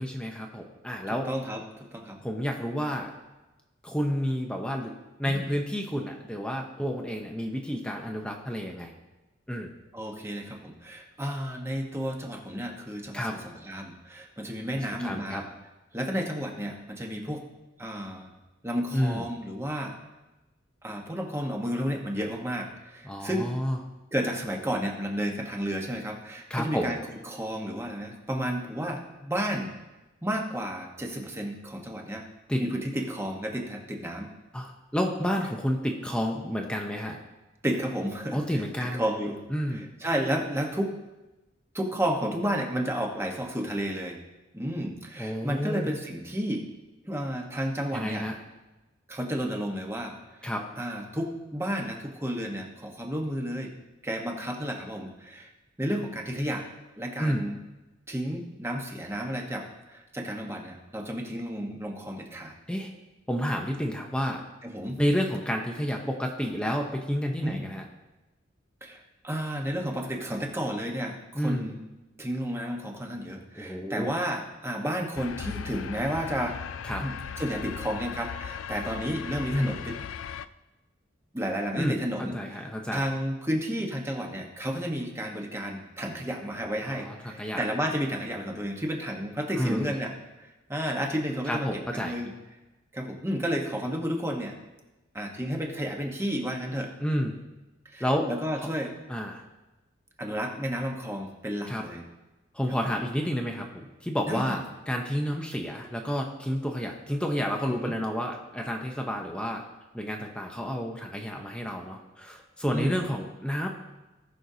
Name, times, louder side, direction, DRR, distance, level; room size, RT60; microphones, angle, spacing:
voice 1, 0.0-1.3 2.2-3.1 3.8-4.9 5.2-8.9 9.5-9.7 13.1-13.3 15.0-15.4 18.9-19.3 23.0-23.8 26.5-26.9 32.5-32.6 34.5-37.2 38.3-39.0 39.5-39.9 45.2-45.9 47.9-48.3 50.4-50.6 57.2-57.4 62.7-62.9 63.3-64.4 65.0-67.8 71.3-71.7 73.6-74.1 76.8-77.0 79.5-79.7 81.7-83.0 86.8-87.6 89.6-90.0 91.5-92.1 97.0-97.4 98.0-98.3 98.6-98.7 99.1-99.4 101.7-101.8 102.5-109.6 109.9-113.7, equal, 5° left, 1 dB, 0.8 m, -30 dB
voice 2, 1.2-2.2 5.2-5.5 9.9-15.4 15.9-17.4 17.8-18.3 18.6-19.9 20.8-23.5 24.1-29.7 30.2-32.2 32.6-34.3 37.6-39.4 39.7-40.9 41.7-44.2 44.5-46.7 47.1-48.3 49.1-50.1 50.4-50.5 50.8-53.7 54.0-55.5 55.8-56.6 57.0-57.6 58.1-62.5 64.6-65.0 67.4-67.7 68.8-71.8 72.2-76.6 77.0-79.9 81.3-82.6 82.9-90.1 90.7-91.7 91.9-92.3 92.9-94.6 95.1-96.9 97.9-98.9 100.2-102.0 102.8-102.9 104.3-104.6 107.8-107.9 112.7-113.0, equal, 15° right, 1 dB, 1.2 m, -32 dB
sound 1, 75.2-80.5, left 8 dB, 85° left, 0.4 m, -38 dB
18.5 x 6.4 x 2.8 m, 1.1 s
head